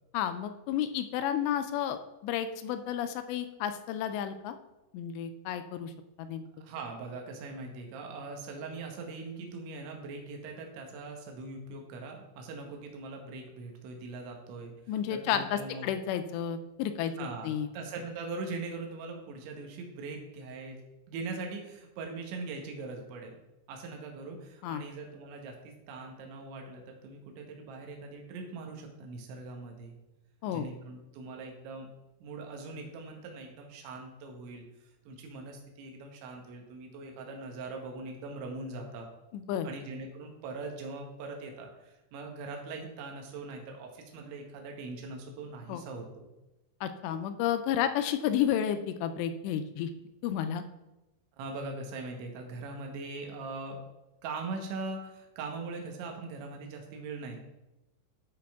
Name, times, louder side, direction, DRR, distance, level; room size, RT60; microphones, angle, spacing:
voice 1, 0.1-4.5 4.9-5.9 6.2-6.5 14.9-17.1 17.4-17.7 24.6-24.8 30.4-30.7 39.3-39.7 45.7-45.8 46.8-49.9 50.2-50.6, left 10 dB, 85° left, 9 dB, 2.6 m, -31 dB
voice 2, 6.6-15.9 17.2-20.8 21.1-23.4 23.7-29.9 30.5-31.9 32.2-34.7 35.1-39.1 39.6-46.3 51.4-53.8 54.2-57.4, right 3 dB, 85° right, 2 dB, 3.5 m, -41 dB
12.5 x 5.1 x 3.5 m, 0.98 s
omnidirectional pair, 5.2 m